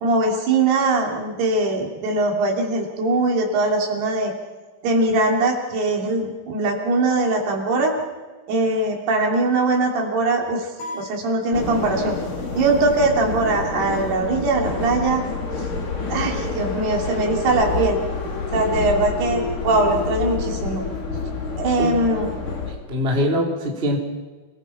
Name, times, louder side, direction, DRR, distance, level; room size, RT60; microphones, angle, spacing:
voice 1, 0.0-4.3 4.8-7.9 8.5-10.7 10.9-12.2 12.5-15.2 16.1-18.0 18.5-20.8 21.6-22.3, right 2 dB, 65° right, 1 dB, 4.8 m, -21 dB
sound 1, 10.8-12.2, left 2 dB, 70° left, 9.8 m, -38 dB
sound 2, 11.5-22.7, left 4 dB, 50° left, 4.7 m, -28 dB
voice 2, 22.7-24.0, equal, 15° right, 0 dB, 2.9 m, -23 dB
28.5 x 20.0 x 5.8 m, 1.3 s
omnidirectional pair, 5.1 m